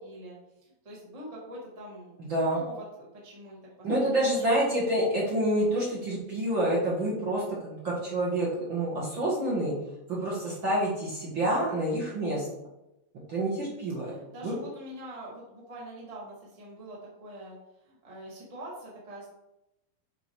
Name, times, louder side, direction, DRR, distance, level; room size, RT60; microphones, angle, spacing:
voice 1, 0.0-2.2 2.5-4.7 14.0-17.6 17.8-19.3, right 1 dB, 20° right, -5 dB, 1.0 m, -44 dB
voice 2, 2.2-2.6 3.8-9.7 10.1-12.5 13.3-14.1 14.4-14.5, right 1 dB, 45° right, -5 dB, 1.9 m, -28 dB
8.7 x 4.0 x 4.6 m, 0.89 s
omnidirectional pair, 4.2 m